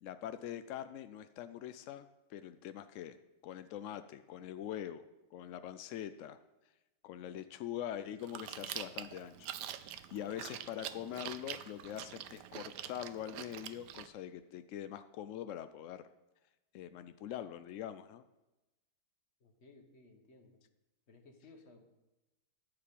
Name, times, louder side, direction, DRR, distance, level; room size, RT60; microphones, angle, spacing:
voice 1, 0.0-3.2 3.4-5.1 5.3-6.4 7.0-9.5 9.9-16.0 16.7-18.2, left 10 dB, 75° left, 11 dB, 0.7 m, -43 dB
Chewing mastication, 8.2-14.1, right 11 dB, 80° right, 1.2 m, -45 dB
voice 2, 19.4-20.6 21.1-21.8, left 3 dB, 40° left, 4 dB, 1.6 m, -59 dB
14.0 x 4.9 x 8.5 m, 1.0 s
omnidirectional pair, 1.8 m